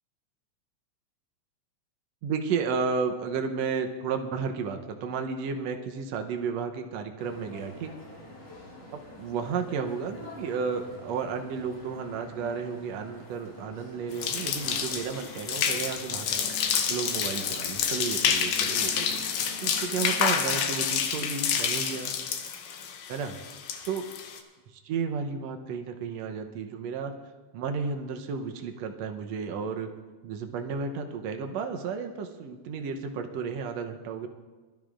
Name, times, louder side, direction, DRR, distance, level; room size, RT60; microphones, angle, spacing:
voice 1, 2.2-7.9 9.2-16.5 16.9-19.2 19.6-22.1 23.1-23.4 23.9-24.1 24.8-27.1 27.5-29.9 30.2-34.3, right 5 dB, 70° right, 5 dB, 2.0 m, -32 dB
sound 1, 7.2-20.2, left 1 dB, 55° left, 4.7 m, -47 dB
sound 2, 14.1-24.4, left 7 dB, 80° left, 2.2 m, -28 dB
21.5 x 12.5 x 2.5 m, 1.3 s
omnidirectional pair, 3.3 m